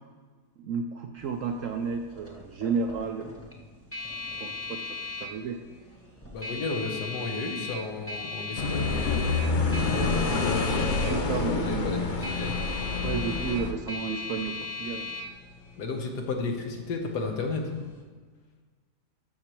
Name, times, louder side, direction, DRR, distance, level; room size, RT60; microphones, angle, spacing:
voice 1, 0.6-3.3 4.4-5.6 11.1-12.0 13.0-15.1, right 5 dB, 70° right, 5 dB, 0.8 m, -32 dB
sound 1, 1.2-18.0, left 4 dB, 10° left, 1.1 m, -38 dB
voice 2, 6.3-12.6 15.8-17.7, left 3 dB, 75° left, 3 dB, 1.6 m, -34 dB
sound 2, 8.6-13.7, left 3 dB, 60° left, 0.5 m, -27 dB
13.0 x 6.4 x 3.0 m, 1.5 s
omnidirectional pair, 1.8 m